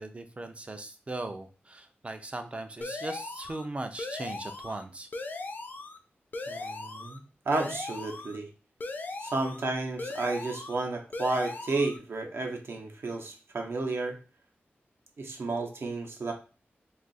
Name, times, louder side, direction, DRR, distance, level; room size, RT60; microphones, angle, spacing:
voice 1, 0.0-5.1, right 2 dB, 30° right, 7 dB, 0.4 m, -38 dB
sound 1, 2.8-3.7 4.0-4.8 5.1-6.0 6.3-7.2 7.5-8.4 8.8-9.7 10.0-10.8 11.1-12.0, left 3 dB, 45° left, 0.4 m, -38 dB
voice 2, 6.5-8.5 9.2-14.2 15.2-16.3, right 3 dB, 70° right, 3 dB, 0.7 m, -32 dB
2.6 x 2.4 x 4.0 m, 0.35 s
wide cardioid pair, 125°, 4 cm